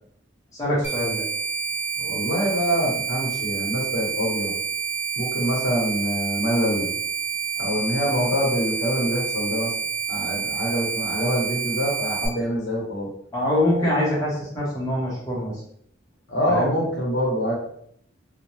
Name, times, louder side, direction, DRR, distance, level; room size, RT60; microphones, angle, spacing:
voice 1, 0.6-1.2 13.3-15.6 16.5-16.7, left 1 dB, 15° left, -6 dB, 0.8 m, -24 dB
sound 1, 0.8-12.3, right 6 dB, 10° right, 0.4 m, -28 dB
voice 2, 2.0-4.5 5.2-6.9 7.6-9.7 10.1-13.1 16.3-17.5, equal, 70° left, -2 dB, 0.8 m, -25 dB
2.6 x 2.1 x 3.0 m, 0.67 s
head